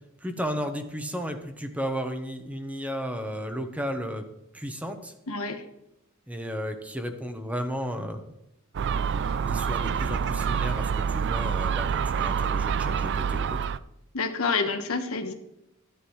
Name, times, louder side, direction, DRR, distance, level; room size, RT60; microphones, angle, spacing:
voice 1, 0.2-4.2 4.5-5.1 6.3-8.3 9.5-13.6, equal, 5° right, 6 dB, 0.9 m, -33 dB
voice 2, 5.3-5.6 14.1-15.3, left 4 dB, 85° left, 6 dB, 1.2 m, -28 dB
Gull seagull, 8.7-13.8, right 6 dB, 55° right, 0.4 m, -27 dB
13.0 x 10.0 x 3.1 m, 0.84 s
head